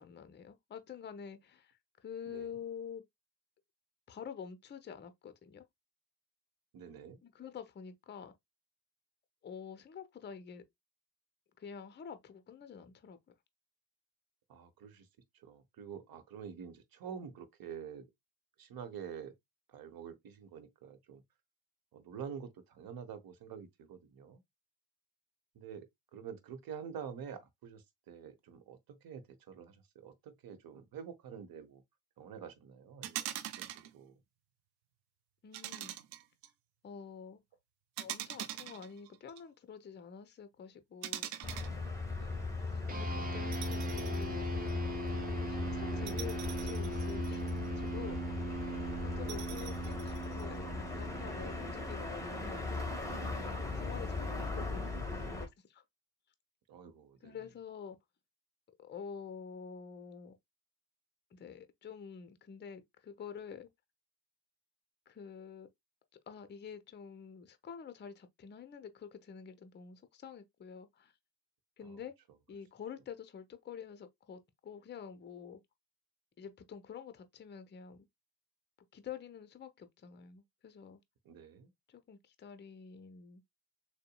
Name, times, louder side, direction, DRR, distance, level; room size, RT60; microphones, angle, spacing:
voice 1, 0.0-3.0 4.1-5.6 7.2-8.4 9.4-10.6 11.6-13.2 35.4-36.0 36.8-37.4 38.0-41.3 42.6-44.5 45.3-47.4 47.8-48.5 49.0-52.8 53.5-54.8 55.1-55.8 57.2-58.0 58.8-60.3 61.3-63.7 65.1-65.7 66.3-71.1 71.8-72.1 72.5-75.6 76.4-78.1 78.9-81.0 81.9-83.4, left 7 dB, 20° left, 0.7 m, -48 dB
voice 2, 6.7-7.2 14.5-15.1 15.4-18.1 18.6-19.3 19.7-21.2 21.9-24.4 25.5-31.8 32.2-34.2 42.2-42.6 49.0-49.4 56.7-57.4 71.8-72.0 81.3-81.7, right 7 dB, 45° right, 1.0 m, -48 dB
sound 1, 33.0-33.9 35.5-36.5 38.0-39.4 41.0-41.7 43.5-44.3 44.7-44.8 46.1-47.7 49.3-50.4, right 12 dB, 70° right, 0.6 m, -43 dB
sound 2, 41.4-55.5, left 3 dB, 5° left, 1.4 m, -39 dB
sound 3, 42.9-52.6, right 2 dB, 20° right, 0.9 m, -40 dB
6.5 x 2.2 x 2.2 m
figure-of-eight pair, 45°, 48 cm